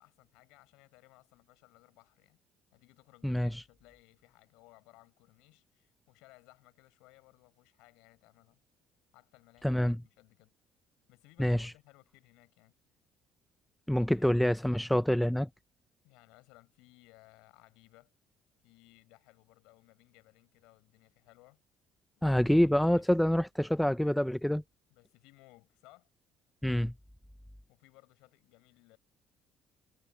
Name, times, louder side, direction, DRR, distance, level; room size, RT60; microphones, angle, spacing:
voice 1, 0.0-2.4 2.7-8.6 9.1-10.5 11.1-12.7 14.1-14.2 16.0-18.1 18.6-21.6 23.0-23.1 24.9-26.1 27.7-29.0, left 23 dB, 75° left, 5.2 m, -61 dB
voice 2, 9.6-10.0 11.4-11.7 13.9-15.5 22.2-24.6 26.6-26.9, equal, 5° left, 0.6 m, -26 dB
hypercardioid pair, 55°, 0 cm